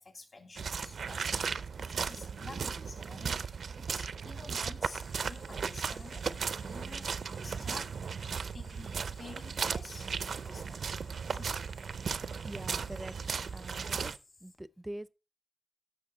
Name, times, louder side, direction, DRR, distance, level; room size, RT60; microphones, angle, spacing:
voice 1, 0.0-6.3 6.5-7.1 7.4-7.9 8.5-10.1 10.5-10.9 11.2-11.6, left 3 dB, 50° left, 2.9 m, -50 dB
sound 1, 0.6-14.2, right 6 dB, 85° right, 0.5 m, -36 dB
sound 2, 4.8-14.6, left 3 dB, 70° left, 4.8 m, -60 dB
voice 2, 12.4-13.1 13.5-14.1 14.4-15.1, right 1 dB, 15° right, 0.4 m, -43 dB
14.0 x 5.7 x 3.8 m
wide cardioid pair, 105°, 0 cm